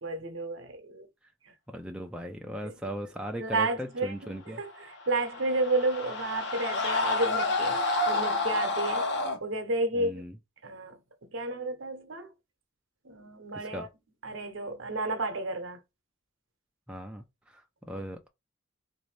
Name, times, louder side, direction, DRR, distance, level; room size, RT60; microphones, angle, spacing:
voice 1, 0.0-1.1 2.6-2.7 3.4-4.1 4.5-10.2 10.6-12.3 13.0-13.9 14.2-15.8, right 2 dB, 70° right, 0.8 m, -32 dB
voice 2, 1.7-4.6 9.9-10.4 13.5-13.9 16.9-17.2 17.5-18.3, equal, 5° right, 0.3 m, -38 dB
sound 1, 4.9-9.4, left 2 dB, 55° left, 0.8 m, -29 dB
3.7 x 2.6 x 3.2 m
head